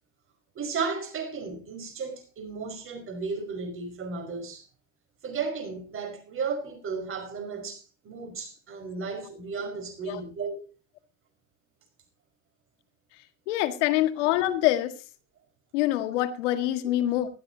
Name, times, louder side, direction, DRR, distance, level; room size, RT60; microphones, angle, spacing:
voice 1, 0.6-4.6 5.2-10.7 16.8-16.9, right 5 dB, 35° right, 5.2 m, -34 dB
voice 2, 13.5-14.9 15.7-17.3, left 14 dB, 75° left, 1.9 m, -25 dB
19.0 x 13.0 x 2.8 m
supercardioid pair, 110°, 36 cm